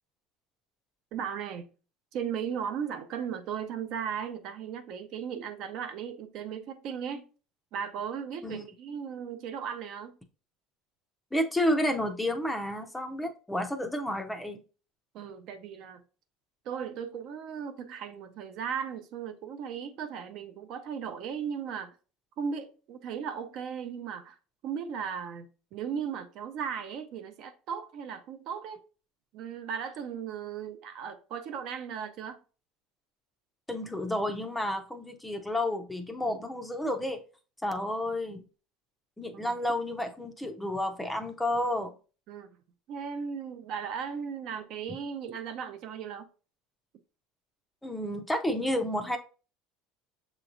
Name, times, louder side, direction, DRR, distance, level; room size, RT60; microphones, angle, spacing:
voice 1, 1.1-1.7 2.1-7.2 7.7-10.1 15.1-16.0 16.7-22.0 22.4-24.4 24.6-28.8 29.3-32.4 42.3-42.5 42.9-46.3, right 7 dB, 55° right, 0.6 m, -36 dB
voice 2, 11.3-14.6 33.7-37.2 37.6-38.4 39.2-41.9 47.8-49.2, left 1 dB, 5° left, 0.5 m, -31 dB
6.8 x 3.0 x 2.5 m
cardioid pair, 140°, 0 cm